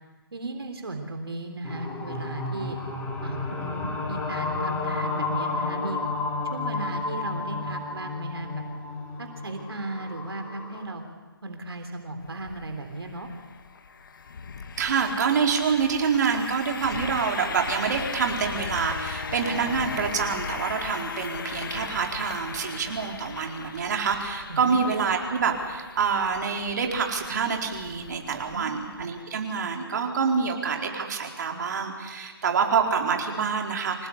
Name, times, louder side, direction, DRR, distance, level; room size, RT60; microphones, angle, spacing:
voice 1, 0.3-2.8 3.2-6.0 6.4-8.5 9.2-11.0 11.4-13.3 24.5-24.8 28.5-29.1, right 2 dB, 80° right, 5 dB, 3.4 m, -36 dB
sound 1, 1.6-10.9, left 3 dB, 10° left, 3.5 m, -32 dB
sound 2, 12.2-29.2, left 5 dB, 55° left, 1.9 m, -38 dB
voice 2, 14.8-34.1, right 6 dB, 45° right, 2 dB, 4.4 m, -26 dB
26.5 x 18.0 x 8.3 m, 1.3 s
hypercardioid pair, 155°, 13 cm